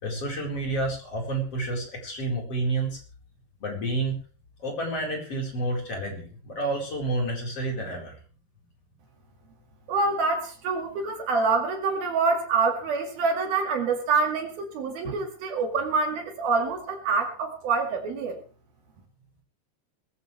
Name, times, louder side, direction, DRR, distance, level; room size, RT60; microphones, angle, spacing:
voice 1, 0.0-3.0 3.6-4.2 4.6-8.1, right 2 dB, 35° left, 0 dB, 5.2 m, -29 dB
voice 2, 9.9-18.4, right 4 dB, 65° right, 4 dB, 3.7 m, -26 dB
20.0 x 16.0 x 3.3 m, 0.38 s
omnidirectional pair, 5.0 m